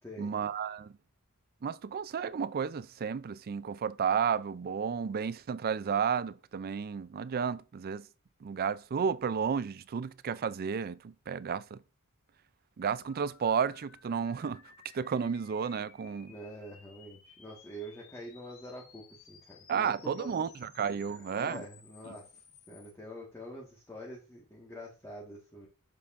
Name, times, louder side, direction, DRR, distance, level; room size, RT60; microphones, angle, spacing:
voice 1, 0.2-0.9 1.6-8.1 8.4-11.8 12.8-14.6 14.9-16.3 19.7-21.6 22.1-22.2, right 7 dB, 45° right, 0.4 m, -32 dB
sound 1, 13.0-22.9, left 6 dB, 85° left, 1.7 m, -58 dB
voice 2, 16.3-20.3 21.0-25.7, equal, 15° left, 1.5 m, -46 dB
8.6 x 6.8 x 2.5 m
head